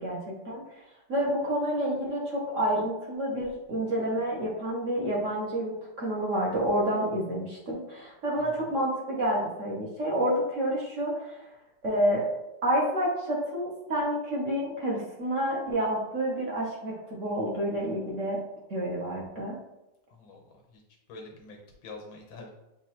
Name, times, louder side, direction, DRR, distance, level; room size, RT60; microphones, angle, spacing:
voice 1, 0.0-0.6 1.1-11.4 11.8-12.3 12.6-18.4 18.7-19.6, equal, 50° right, -3 dB, 1.1 m, -29 dB
voice 2, 8.4-8.7 20.1-20.4 20.7-20.8 21.1-22.5, left 3 dB, 85° left, 1 dB, 1.8 m, -46 dB
7.0 x 2.6 x 2.9 m, 0.93 s
omnidirectional pair, 2.1 m